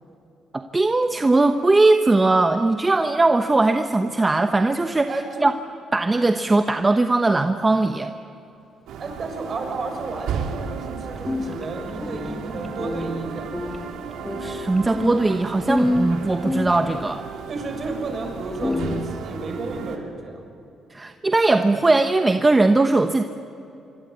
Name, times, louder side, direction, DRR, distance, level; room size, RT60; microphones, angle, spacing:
voice 1, 0.5-5.1 5.4-5.5 5.9-8.1 14.4-17.2 20.9-23.2, right 2 dB, 20° right, 7 dB, 1.1 m, -19 dB
voice 2, 5.1-5.5 9.0-13.5 17.5-20.5, right 3 dB, 45° right, 3 dB, 6.8 m, -32 dB
sound 1, 8.9-20.0, right 6 dB, 80° right, 3.1 m, -34 dB
sound 2, 11.2-17.0 17.8-17.9 18.4-19.0, left 1 dB, 15° left, 2.4 m, -28 dB
26.0 x 25.0 x 8.4 m, 2.8 s
cardioid pair, 90°, 0 cm